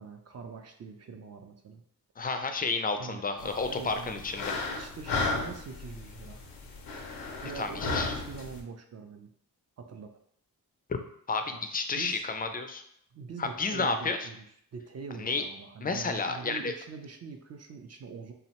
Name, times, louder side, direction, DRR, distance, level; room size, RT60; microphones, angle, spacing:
voice 1, 0.0-1.8 2.9-4.2 4.7-6.4 7.4-9.3 9.8-10.1 11.5-11.6 12.0-12.2 13.1-14.4 14.7-18.3, right 5 dB, 40° right, 5 dB, 0.4 m, -43 dB
voice 2, 2.2-4.5 7.6-8.1 11.3-12.8 13.4-14.3 15.2-15.4 15.8-16.7, left 4 dB, 25° left, 7 dB, 0.3 m, -31 dB
sound 1, 3.4-8.6, left 3 dB, 85° left, 0.5 m, -35 dB
2.7 x 2.0 x 2.9 m, 0.68 s
supercardioid pair, 45°, 39 cm